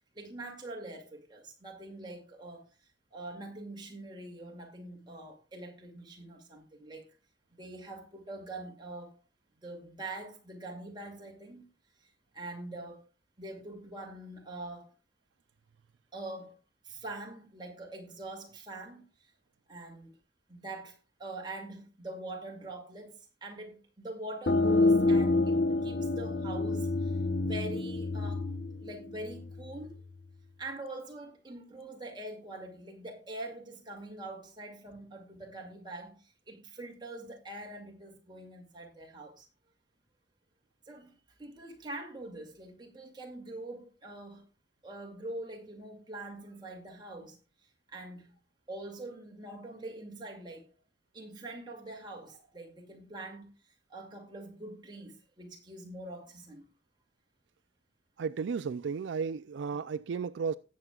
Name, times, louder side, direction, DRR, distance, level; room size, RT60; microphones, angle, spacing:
voice 1, 0.1-7.2 7.5-9.2 9.6-11.7 12.0-13.0 13.4-14.9 16.1-16.6 16.8-19.3 19.7-20.2 20.5-28.5 28.8-30.0 30.6-39.5 40.9-44.5 44.8-47.4 47.9-48.4 48.7-50.7 51.1-56.7, right 2 dB, 25° right, 2.3 m, -44 dB
sound 1, 24.5-29.9, left 2 dB, 60° left, 0.8 m, -28 dB
voice 2, 58.2-60.6, right 5 dB, 70° right, 0.4 m, -33 dB
17.5 x 7.4 x 2.3 m
head